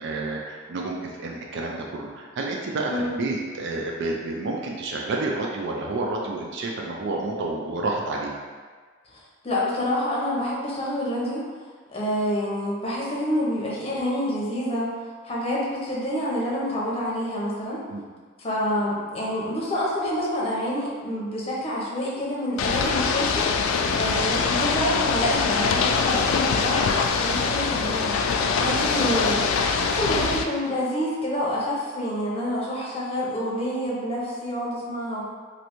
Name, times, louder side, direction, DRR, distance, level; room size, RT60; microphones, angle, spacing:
voice 1, 0.0-8.3 17.9-18.0 28.6-28.9, right 2 dB, 60° right, -1 dB, 0.4 m, -29 dB
voice 2, 9.1-11.4 11.9-14.9 15.2-17.8 18.4-28.2 28.5-35.3, equal, 30° left, -5 dB, 0.7 m, -27 dB
Ocean / Boat Water vehicle, 22.6-30.4, left 5 dB, 85° left, 0.3 m, -23 dB
3.2 x 2.6 x 2.9 m, 1.5 s
head